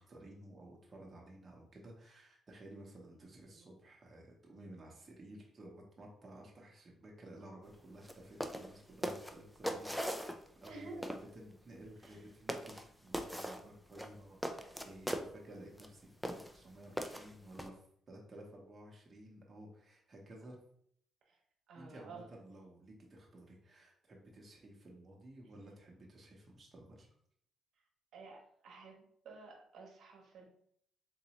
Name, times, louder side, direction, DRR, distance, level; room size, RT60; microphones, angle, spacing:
voice 1, 0.0-10.3 10.6-20.6 21.7-27.1, right 1 dB, 35° right, -2 dB, 0.9 m, -54 dB
voice 2, 3.0-3.7 10.7-11.1 12.0-12.2 14.7-14.8 21.3-21.4 21.7-22.3 28.1-30.5, right 3 dB, 75° right, -1 dB, 0.9 m, -52 dB
sound 1, 8.0-8.1 8.4-8.7 9.0-10.7 11.0-11.2 12.0-12.2 12.5-12.8 13.1-13.6 13.9-15.3 15.8-15.9 16.2-16.5 17.0-17.7, equal, ahead, 0.4 m, -39 dB
3.9 x 2.6 x 3.0 m, 0.66 s
cardioid pair, 90°, 0 cm